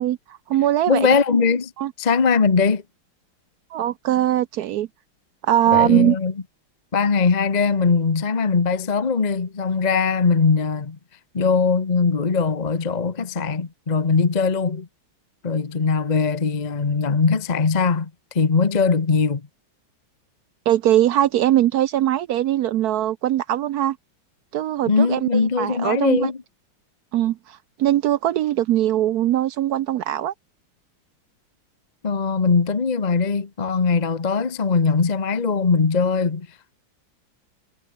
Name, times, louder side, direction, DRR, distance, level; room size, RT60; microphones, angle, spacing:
voice 1, 0.0-1.1 1.8-1.9 3.7-4.9 5.4-6.2 20.7-24.0 24.5-26.3 27.1-30.3, right 12 dB, 75° right, 0.8 m, -21 dB
voice 2, 0.9-1.7 2.0-2.8 5.7-6.3 6.9-11.0 11.3-14.9 15.4-18.1 18.3-19.5 24.9-26.4 32.0-36.5, left 5 dB, 30° left, 0.9 m, -20 dB
omnidirectional pair, 2.3 m